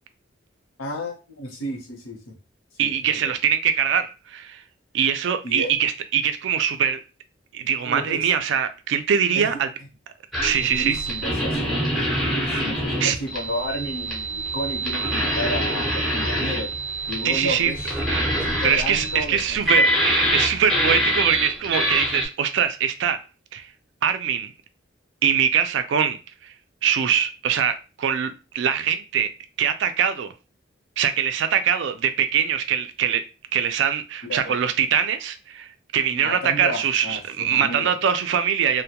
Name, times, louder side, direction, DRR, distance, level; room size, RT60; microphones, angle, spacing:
voice 1, 0.8-2.3 2.8-3.4 5.4-5.7 7.8-8.3 9.3-9.5 10.6-16.7 17.1-17.9 18.4-19.9 34.2-34.5 36.1-38.0, left 1 dB, 90° left, 0.8 m, -32 dB
voice 2, 2.8-4.6 4.9-7.0 7.5-9.7 10.4-10.9 13.0-13.2 17.2-17.7 18.1-18.3 18.6-23.2 23.5-23.7 24.0-24.5 25.2-26.2 26.8-29.3 29.6-30.3 31.0-33.2 33.5-38.8, right 8 dB, 65° right, 0.3 m, -23 dB
sound 1, 10.3-22.2, equal, ahead, 0.5 m, -25 dB
2.2 x 2.1 x 2.8 m
head